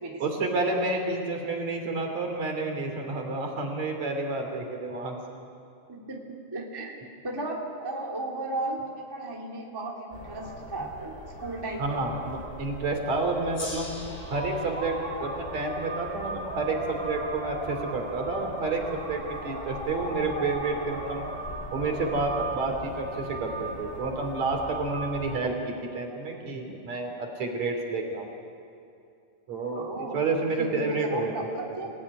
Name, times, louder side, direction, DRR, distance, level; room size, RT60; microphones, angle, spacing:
voice 1, 0.2-5.2 11.8-14.0 14.3-14.9 15.2-21.3 21.7-28.3 29.5-31.7, right 3 dB, 45° right, 3 dB, 3.8 m, -30 dB
voice 2, 5.9-7.0 7.2-12.0 29.7-31.9, right 2 dB, 10° right, -1 dB, 1.9 m, -35 dB
sound 1, 10.1-25.4, right 1 dB, 15° left, 2.0 m, -37 dB
Gong, 13.5-18.3, left 2 dB, 45° left, 6.3 m, -45 dB
27.5 x 18.0 x 9.7 m, 2.6 s
omnidirectional pair, 4.6 m